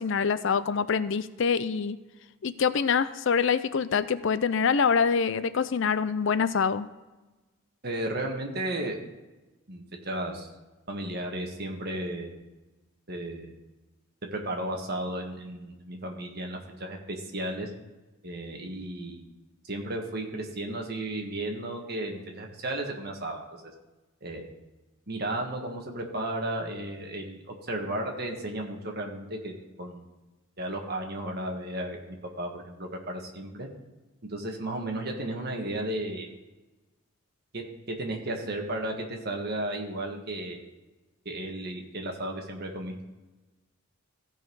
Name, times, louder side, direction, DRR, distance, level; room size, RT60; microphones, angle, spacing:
voice 1, 0.0-2.0 2.4-6.9, left 6 dB, 60° left, 14 dB, 0.4 m, -25 dB
voice 2, 7.8-9.0 9.7-10.5 10.9-12.3 13.1-13.5 14.3-17.7 18.2-19.2 19.6-23.7 24.2-24.5 25.1-29.5 29.8-30.0 30.6-33.7 34.3-36.3 37.5-40.6 41.2-43.0, right 1 dB, 45° right, 1 dB, 1.6 m, -34 dB
15.5 x 5.4 x 4.7 m, 1.1 s
head